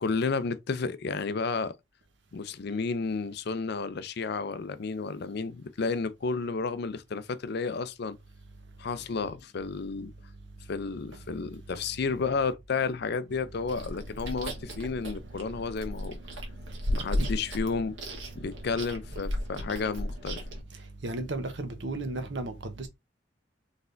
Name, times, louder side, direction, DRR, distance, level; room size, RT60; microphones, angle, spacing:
voice 1, 0.0-1.8 2.3-8.2 8.8-10.1 10.7-16.2 16.9-18.0 18.4-20.4, left 4 dB, 60° left, 0.5 m, -32 dB
Chewing mastication, 13.7-20.6, equal, 85° right, 1.5 m, -35 dB
voice 2, 20.7-22.9, right 2 dB, 70° right, 1.0 m, -34 dB
4.1 x 3.4 x 2.6 m
head